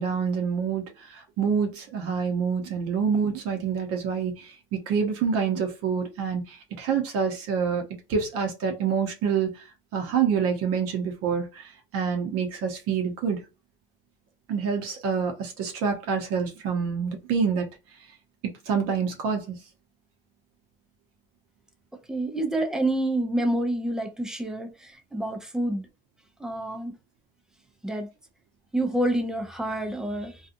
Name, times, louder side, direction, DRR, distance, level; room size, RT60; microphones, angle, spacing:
voice 1, 0.0-7.8 8.1-9.6 9.9-13.4 14.5-17.7 18.4-19.5, right 6 dB, 45° right, 0.8 m, -27 dB
voice 2, 22.1-25.8 26.4-26.9 27.8-28.1 28.7-30.4, right 1 dB, ahead, 0.3 m, -28 dB
2.7 x 2.3 x 2.5 m
supercardioid pair, 130°, 33 cm